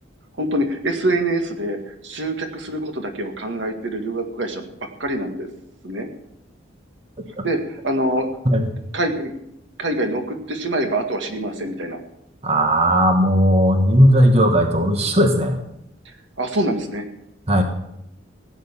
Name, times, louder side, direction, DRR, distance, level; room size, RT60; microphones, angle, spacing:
voice 1, 0.4-4.7 5.0-5.5 5.8-6.1 7.4-8.3 8.9-9.3 9.8-12.0 16.4-17.0, right 1 dB, 70° right, 5 dB, 2.0 m, -25 dB
voice 2, 12.4-15.6 17.5-17.6, equal, 35° right, 5 dB, 1.6 m, -16 dB
16.5 x 9.2 x 7.3 m, 0.77 s
head